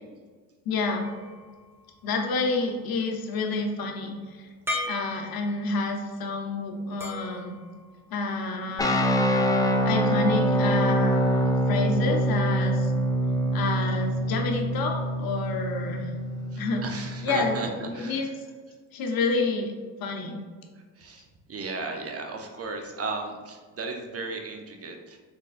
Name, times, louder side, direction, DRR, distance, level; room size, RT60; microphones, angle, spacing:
voice 1, 0.7-1.1 2.0-4.5 4.8-7.6 8.1-9.0 9.8-12.9 13.5-16.1 16.6-16.8 17.2-18.3 18.9-19.7 20.0-20.4, left 3 dB, 60° left, 2 dB, 0.8 m, -29 dB
sound 1, 1.0-2.7 4.7-5.9 7.0-8.5, left 1 dB, 5° right, 1.0 m, -38 dB
sound 2, 8.8-17.7, equal, 10° left, 0.3 m, -25 dB
voice 2, 16.5-17.7 17.9-18.2 21.0-25.2, right 3 dB, 35° right, 3 dB, 0.7 m, -35 dB
3.8 x 3.4 x 2.5 m, 1.5 s
supercardioid pair, 60°, 40 cm